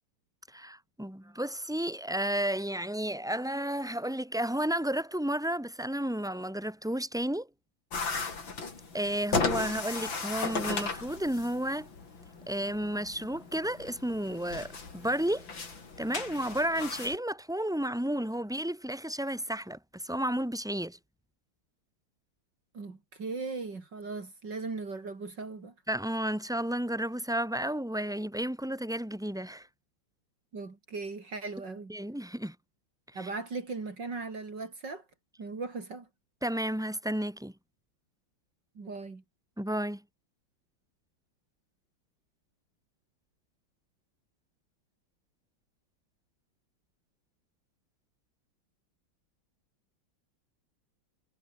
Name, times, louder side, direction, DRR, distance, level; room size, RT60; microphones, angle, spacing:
voice 1, 0.5-7.5 8.9-11.9 12.5-15.5 16.0-21.0 25.9-29.7 31.9-32.6 33.1-33.3 36.4-37.5 39.6-40.0, right 1 dB, ahead, 5.8 m, -32 dB
sound 1, 7.9-17.2, left 4 dB, 65° left, 4.3 m, -36 dB
voice 2, 22.7-25.7 30.5-31.9 33.2-35.0 35.4-36.1 38.8-39.2, right 4 dB, 55° right, 4.0 m, -38 dB
omnidirectional pair, 2.2 m